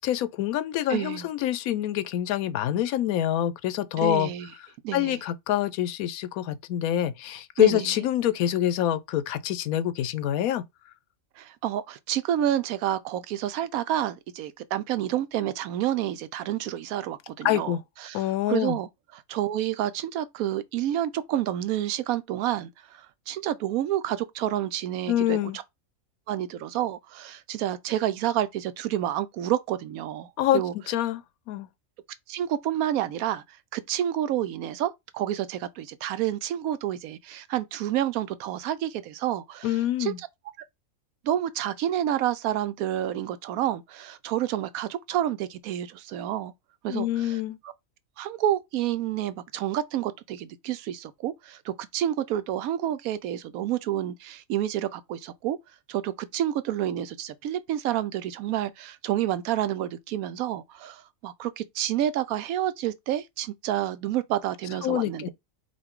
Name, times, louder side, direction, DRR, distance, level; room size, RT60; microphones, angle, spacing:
voice 1, 0.0-4.3 4.9-10.6 17.4-17.8 18.1-18.8 25.1-25.6 30.4-30.6 30.9-31.2 31.5-31.7 39.6-40.2 46.9-47.6 64.8-65.3, left 12 dB, 90° left, 1.1 m, -26 dB
voice 2, 0.9-1.3 4.0-4.5 4.8-5.2 7.6-8.0 11.4-25.4 26.3-30.7 32.3-33.4 33.7-40.3 41.2-46.5 46.8-47.7 48.2-55.6 55.9-65.3, right 12 dB, 85° right, 1.0 m, -29 dB
5.0 x 2.6 x 3.6 m
omnidirectional pair, 1.5 m